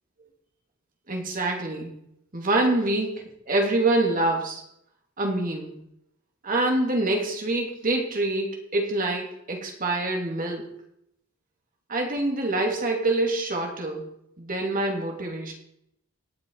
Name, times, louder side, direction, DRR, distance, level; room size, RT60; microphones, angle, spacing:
voice 1, 1.1-2.0 2.3-4.6 5.2-5.7 6.4-10.7 11.9-14.1 14.4-15.5, right 2 dB, 40° right, 1 dB, 2.7 m, -26 dB
18.5 x 6.9 x 4.7 m, 0.75 s
head